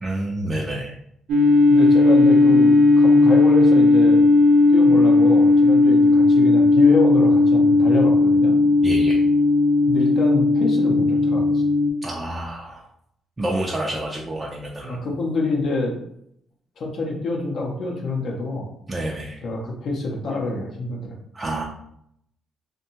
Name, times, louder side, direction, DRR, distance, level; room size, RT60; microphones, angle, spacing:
voice 1, 0.0-0.9 8.8-9.2 12.0-12.8 13.4-15.0 18.9-19.4 21.3-21.6, right 1 dB, 25° right, -2 dB, 0.4 m, -28 dB
sound 1, 1.3-11.9, left 3 dB, 85° right, 0.4 m, -15 dB
voice 2, 1.7-4.2 4.7-8.6 9.9-11.6 14.9-15.9 16.8-18.7 19.4-21.2, left 2 dB, 65° left, -1 dB, 0.6 m, -26 dB
2.6 x 2.2 x 2.8 m, 0.73 s
cardioid pair, 90°, 0 cm